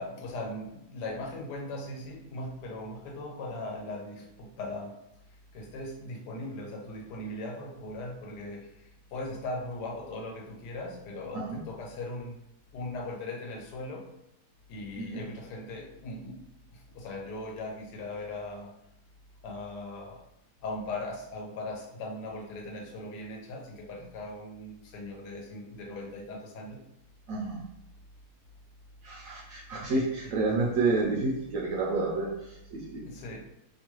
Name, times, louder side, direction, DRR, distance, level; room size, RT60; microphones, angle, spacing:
voice 1, 0.0-5.0 5.5-12.4 12.7-14.1 14.7-16.4 16.7-18.7 19.4-20.2 20.6-26.8 30.4-30.5 33.0-33.4, left 2 dB, 80° left, 0 dB, 1.2 m, -39 dB
voice 2, 14.9-15.3 27.3-27.6 29.0-33.1, right 3 dB, 65° right, -3 dB, 1.0 m, -30 dB
2.9 x 2.3 x 3.0 m, 0.81 s
omnidirectional pair, 1.8 m